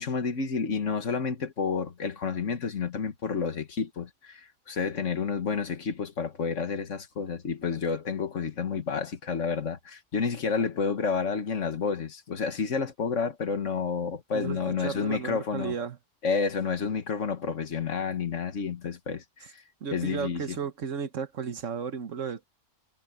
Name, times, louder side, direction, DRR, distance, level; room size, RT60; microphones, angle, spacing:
voice 1, 0.0-15.7 16.2-19.6 19.9-20.6, left 5 dB, 80° left, 1.8 m, -30 dB
voice 2, 14.3-16.0 19.8-22.4, right 6 dB, 85° right, 1.6 m, -34 dB
omnidirectional pair, 1.3 m